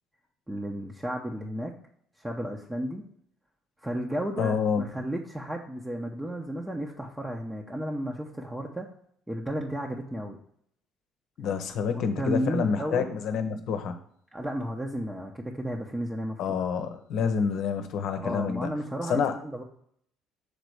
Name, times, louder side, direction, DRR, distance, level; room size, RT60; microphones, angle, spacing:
voice 1, 0.5-1.7 2.2-3.0 3.8-8.9 9.3-10.4 11.9-13.2 14.3-16.6 18.2-19.6, equal, 10° right, -1 dB, 0.9 m, -33 dB
voice 2, 4.4-4.9 11.4-14.0 16.4-18.7 19.1-19.3, left 6 dB, 60° left, 7 dB, 0.9 m, -28 dB
6.7 x 4.0 x 4.8 m, 0.67 s
hypercardioid pair, 60°, 0 cm